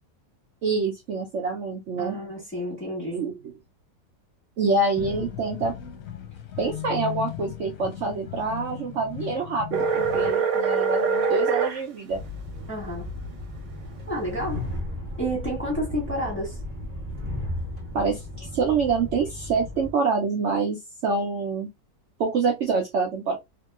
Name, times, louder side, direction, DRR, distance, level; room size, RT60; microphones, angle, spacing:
voice 1, 0.6-2.2 3.1-3.3 4.6-5.7 6.6-12.2 17.9-21.7 22.2-23.4, right 4 dB, 80° right, 0.6 m, -26 dB
voice 2, 2.0-3.2 12.7-13.1 14.1-14.7 15.2-16.6, equal, 10° left, 1.1 m, -30 dB
sound 1, 5.0-10.3, left 10 dB, 60° left, 1.0 m, -36 dB
sound 2, 9.7-11.8, right 5 dB, 65° right, 1.1 m, -23 dB
Train, 12.1-19.9, left 1 dB, 30° right, 0.6 m, -35 dB
2.9 x 2.7 x 2.3 m
omnidirectional pair, 1.9 m